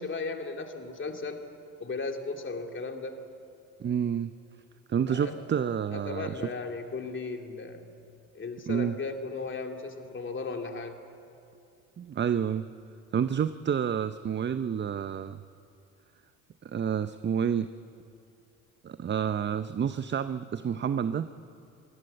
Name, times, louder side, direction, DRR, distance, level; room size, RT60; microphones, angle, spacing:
voice 1, 0.0-1.4 1.8-3.2 5.1-5.4 5.9-7.8 8.3-11.0, left 3 dB, 30° left, 4 dB, 2.8 m, -36 dB
voice 2, 3.8-4.3 4.9-6.5 8.7-8.9 12.0-12.7 13.1-15.4 16.6-17.7 18.8-21.3, right 8 dB, 30° right, 12 dB, 0.7 m, -29 dB
23.0 x 17.0 x 8.0 m, 2.5 s
hypercardioid pair, 70°, 38 cm